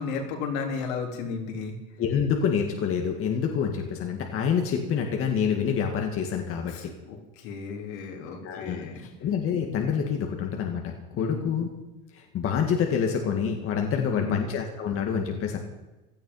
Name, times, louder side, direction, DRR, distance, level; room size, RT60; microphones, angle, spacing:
voice 1, 0.0-1.8 6.7-9.0 11.1-11.4 13.9-14.4, left 5 dB, 65° left, 2 dB, 3.9 m, -34 dB
voice 2, 2.0-6.9 8.4-11.7 12.1-15.6, left 7 dB, 30° left, 3 dB, 1.8 m, -27 dB
16.5 x 12.5 x 5.6 m, 1.1 s
supercardioid pair, 150°, 43 cm